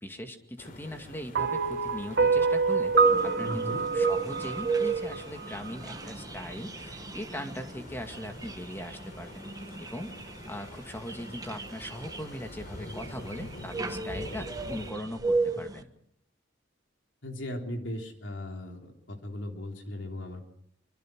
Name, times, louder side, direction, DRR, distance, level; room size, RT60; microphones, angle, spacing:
voice 1, 0.0-2.9 3.2-9.4 9.8-10.1 10.5-15.9, equal, 10° left, 5 dB, 2.2 m, -40 dB
sound 1, 0.6-14.9, left 1 dB, 50° left, 3.4 m, -46 dB
sound 2, 1.3-5.7, right 5 dB, 60° right, 1.1 m, -27 dB
sound 3, 2.9-15.8, right 4 dB, 20° right, 1.2 m, -33 dB
voice 2, 3.4-3.8 17.2-20.4, left 1 dB, 75° left, 3 dB, 3.5 m, -37 dB
25.5 x 24.5 x 6.3 m, 0.70 s
head